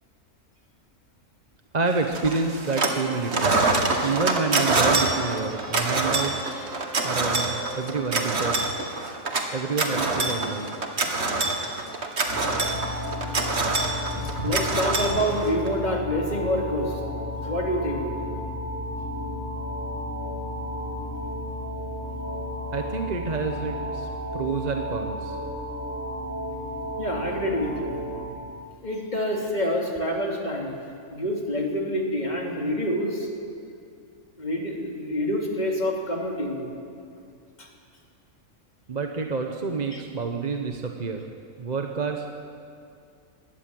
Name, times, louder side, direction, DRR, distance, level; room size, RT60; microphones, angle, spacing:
voice 1, 1.7-6.4 7.0-8.6 9.5-10.8 22.7-25.4 38.9-41.2 41.6-42.3, right 4 dB, 35° right, 4 dB, 1.1 m, -28 dB
sound 1, 2.1-3.0 3.3-15.7, right 3 dB, 50° right, 2.0 m, -25 dB
sound 2, 2.7-8.4, right 3 dB, 5° left, 4.9 m, -41 dB
sound 3, 12.3-28.3, left 1 dB, 85° left, 7.9 m, -33 dB
voice 2, 14.1-17.0 17.4-18.0 27.0-28.0 28.8-30.7 31.1-33.3 34.4-36.6 37.6-37.7 39.9-40.0, equal, 30° left, 0 dB, 2.9 m, -27 dB
21.5 x 17.5 x 7.8 m, 2.4 s
omnidirectional pair, 1.4 m